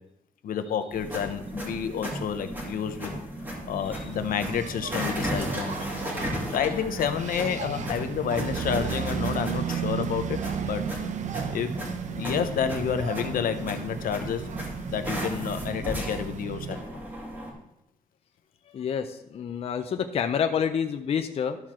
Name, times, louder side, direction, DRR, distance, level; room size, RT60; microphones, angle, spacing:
voice 1, 0.4-3.1 3.7-5.9 6.5-10.8 11.5-11.7 12.1-14.4 14.9-17.0, left 8 dB, 75° left, 9 dB, 0.8 m, -29 dB
sound 1, 0.9-17.5, equal, 15° right, 2.3 m, -35 dB
Engine, 3.9-16.8, right 8 dB, 55° right, 0.6 m, -35 dB
voice 2, 18.7-21.6, left 7 dB, 45° left, 7 dB, 0.5 m, -28 dB
12.5 x 4.4 x 6.1 m, 0.83 s
wide cardioid pair, 175°, 15 cm